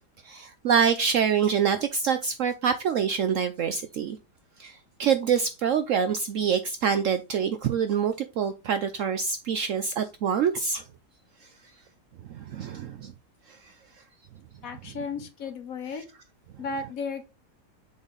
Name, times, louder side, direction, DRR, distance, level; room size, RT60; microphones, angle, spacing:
voice 1, 0.2-4.2 4.6-10.8 12.3-13.1, right 7 dB, 70° right, 0.8 m, -26 dB
voice 2, 14.6-16.0 16.6-17.2, left 4 dB, 60° left, 1.3 m, -34 dB
7.1 x 3.9 x 3.9 m
omnidirectional pair, 1.8 m